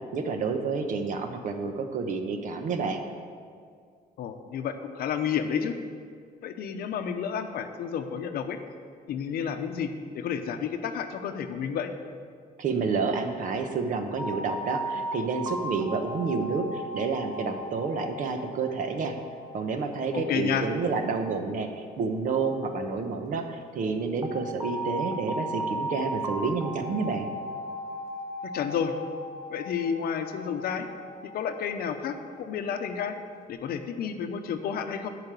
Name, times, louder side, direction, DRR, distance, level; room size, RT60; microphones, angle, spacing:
voice 1, 0.1-3.0 12.6-19.1 19.5-27.3, right 4 dB, 55° right, 6 dB, 1.0 m, -29 dB
voice 2, 4.2-5.7 6.4-8.6 9.1-11.9 20.1-20.7 28.5-28.9 29.5-30.9 31.3-33.2 33.5-35.1, left 7 dB, 70° left, 7 dB, 0.8 m, -31 dB
sound 1, 14.2-23.0 24.2-33.4, right 1 dB, 20° right, 1.0 m, -37 dB
11.0 x 5.1 x 8.2 m, 2.1 s
cardioid pair, 155°, 16 cm